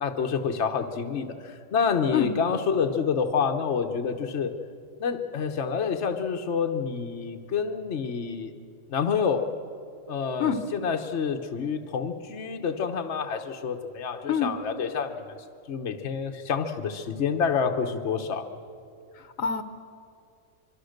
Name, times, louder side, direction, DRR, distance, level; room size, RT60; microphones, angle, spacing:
voice 1, 0.0-4.5 5.0-8.5 8.9-9.5 10.1-15.4 15.7-18.5, left 6 dB, 60° left, 5 dB, 1.3 m, -28 dB
voice 2, 19.2-19.6, left 7 dB, 80° left, 10 dB, 1.5 m, -26 dB
25.0 x 24.0 x 6.6 m, 2.4 s
omnidirectional pair, 1.4 m